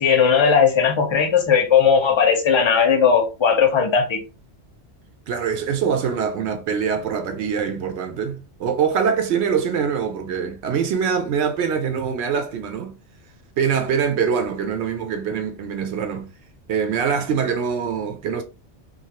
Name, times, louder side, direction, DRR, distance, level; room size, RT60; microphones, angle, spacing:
voice 1, 0.0-4.2, left 6 dB, 35° left, 0.5 m, -17 dB
voice 2, 5.3-12.9 13.6-16.3 16.7-18.4, right 7 dB, 75° right, 0.9 m, -23 dB
2.6 x 2.4 x 2.8 m
omnidirectional pair, 1.2 m